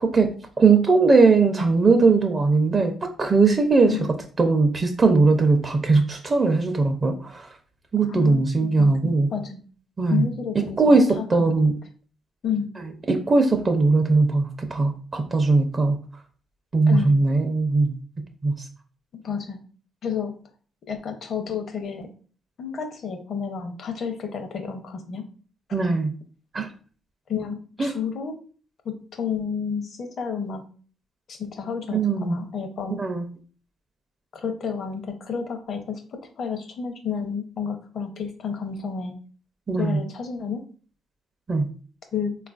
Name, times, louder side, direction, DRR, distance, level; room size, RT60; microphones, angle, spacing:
voice 1, 0.0-4.0 4.4-7.5 7.9-9.3 10.0-10.3 10.6-11.7 13.1-16.0 16.7-18.0 18.4-18.5 25.7-26.1 26.5-26.7 27.8-28.0 31.9-32.4 33.0-33.3 39.7-40.0 41.5-41.7, right 3 dB, 35° right, 5 dB, 0.5 m, -19 dB
voice 2, 8.0-9.6 10.1-11.6 12.4-12.7 16.9-17.1 19.1-19.6 20.0-20.3 20.9-22.1 22.6-25.2 27.3-28.3 28.8-30.6 31.3-33.0 34.3-36.0 36.4-39.1 39.8-40.6 42.1-42.3, left 6 dB, 60° left, 6 dB, 0.6 m, -30 dB
3.6 x 2.4 x 2.4 m, 0.41 s
supercardioid pair, 75°, 0 cm